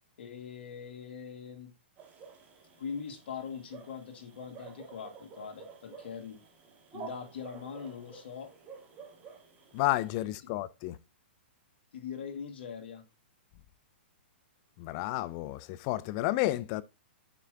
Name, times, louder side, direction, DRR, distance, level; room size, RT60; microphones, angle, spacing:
voice 1, 0.2-1.7 2.8-6.4 6.9-8.5 10.2-10.3 11.9-13.0, left 6 dB, 65° left, 1.7 m, -42 dB
sound 1, 2.0-10.2, right 5 dB, 25° right, 1.6 m, -50 dB
voice 2, 9.7-10.9 14.8-16.8, left 17 dB, 35° left, 0.4 m, -31 dB
5.9 x 4.5 x 3.7 m
hypercardioid pair, 140°, 6 cm